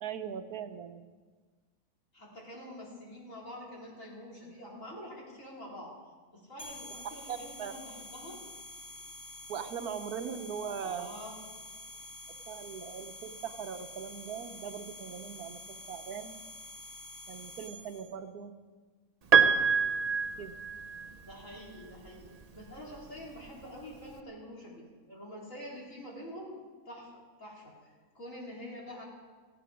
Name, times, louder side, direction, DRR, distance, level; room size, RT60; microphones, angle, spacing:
voice 1, 0.0-1.1 7.0-7.7 9.5-11.2 12.3-16.4 17.3-18.5 20.4-20.5, right 7 dB, 85° right, 9 dB, 1.4 m, -40 dB
voice 2, 2.1-5.9 6.3-8.4 10.8-11.4 21.2-26.6 26.9-29.0, equal, 60° left, -4 dB, 4.7 m, -46 dB
sound 1, 6.6-18.0, left 1 dB, 30° left, 3.0 m, -47 dB
Piano, 19.3-21.3 22.6-22.7, right 6 dB, 40° right, 0.5 m, -25 dB
17.0 x 16.0 x 5.2 m, 1.4 s
omnidirectional pair, 1.6 m